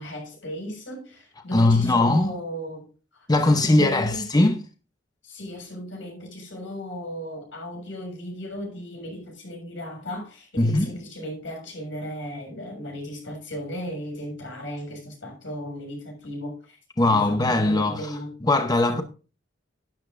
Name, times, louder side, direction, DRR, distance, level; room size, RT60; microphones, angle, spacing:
voice 1, 0.0-2.9 3.5-4.3 5.2-16.8 17.0-18.3 18.9-19.0, equal, 85° left, 6.7 m, -36 dB
voice 2, 1.5-2.3 3.3-4.6 10.6-11.0 17.0-19.0, left 2 dB, 20° left, 0.8 m, -20 dB
12.0 x 11.0 x 2.6 m
head